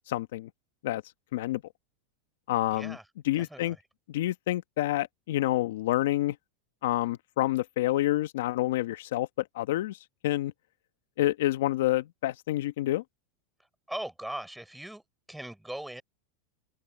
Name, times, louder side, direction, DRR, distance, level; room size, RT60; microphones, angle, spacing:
voice 1, 0.1-0.5 0.8-1.0 1.3-1.6 2.5-3.0 3.2-3.8 4.1-6.4 6.8-9.3 9.5-10.0 10.2-10.5 11.2-13.0, left 15 dB, 75° left, 1.2 m, -28 dB
voice 2, 2.7-3.0 3.3-3.7 13.9-15.0 15.3-16.0, right 1 dB, 5° right, 4.3 m, -39 dB
open air
supercardioid pair, 125°, 0 cm